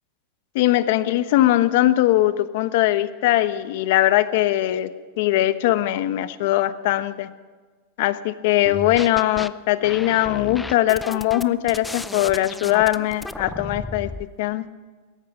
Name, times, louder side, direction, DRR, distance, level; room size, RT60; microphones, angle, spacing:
voice 1, 0.5-4.9 5.2-7.3 8.0-14.1 14.4-14.7, left 15 dB, 65° left, 12 dB, 1.1 m, -20 dB
sound 1, 8.7-9.5 9.8-14.3, left 2 dB, 5° left, 0.5 m, -34 dB
17.0 x 14.0 x 6.1 m, 1.4 s
supercardioid pair, 140°, 0 cm